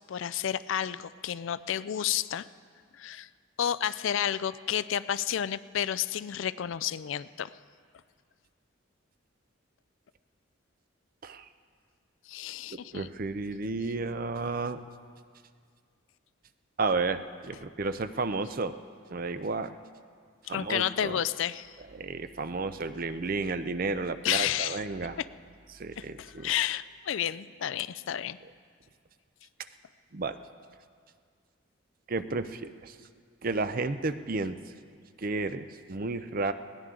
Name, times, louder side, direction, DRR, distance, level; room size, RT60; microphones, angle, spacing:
voice 1, 0.1-2.5 2.9-3.3 3.6-7.6 12.3-13.1 20.5-21.8 24.2-24.8 25.2-25.3 26.0-28.4, left 10 dB, 70° left, 16 dB, 0.4 m, -31 dB
voice 2, 12.7-14.8 16.8-18.8 19.1-19.8 20.5-21.2 21.9-25.2 25.7-26.5 30.1-30.4 32.1-33.0 33.4-34.6 35.2-36.5, right 3 dB, 45° right, 11 dB, 0.5 m, -32 dB
20.5 x 18.0 x 3.8 m, 2.1 s
head